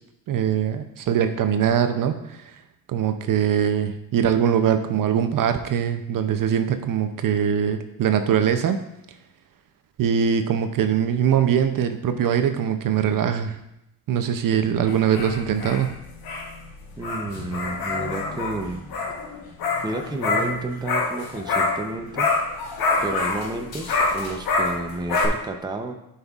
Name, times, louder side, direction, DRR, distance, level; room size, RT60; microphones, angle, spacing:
voice 1, 0.3-2.5 2.9-8.8 10.0-13.6 14.1-15.9, right 8 dB, 55° right, 8 dB, 0.6 m, -22 dB
sound 1, 14.9-21.9 22.1-25.3, left 3 dB, 60° left, 1.1 m, -26 dB
voice 2, 17.0-18.8 19.8-22.3 23.0-25.9, right 2 dB, 10° right, 4 dB, 0.6 m, -31 dB
11.5 x 5.5 x 2.4 m, 0.85 s
cardioid pair, 110°, 40 cm